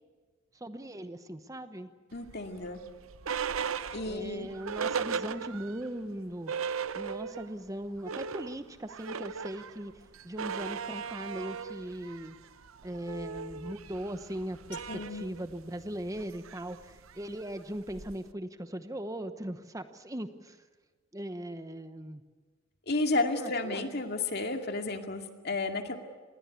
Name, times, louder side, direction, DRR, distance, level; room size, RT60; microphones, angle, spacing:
voice 1, 0.5-1.9 4.0-12.4 12.8-14.8 15.1-20.6 21.1-22.2 23.4-23.8, right 1 dB, 15° right, 10 dB, 0.9 m, -39 dB
voice 2, 2.1-2.8 3.9-4.5 14.9-15.2 22.9-26.0, left 2 dB, 50° left, 5 dB, 2.3 m, -32 dB
sound 1, 2.2-5.9 6.2-6.3 6.5-7.6 7.9-18.3, right 6 dB, 80° right, 0.7 m, -38 dB
27.0 x 20.5 x 8.4 m, 1.4 s
head